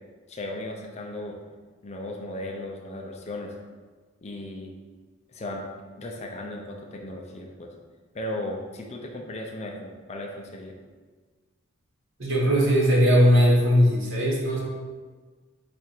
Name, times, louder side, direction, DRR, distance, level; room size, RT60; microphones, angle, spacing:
voice 1, 0.3-1.4 1.8-3.5 4.2-4.7 5.3-5.7 6.0-7.7 8.1-10.7, left 1 dB, 30° left, 1 dB, 0.4 m, -36 dB
voice 2, 12.2-14.6, equal, 65° right, -5 dB, 1.3 m, -19 dB
4.7 x 2.5 x 4.3 m, 1.4 s
head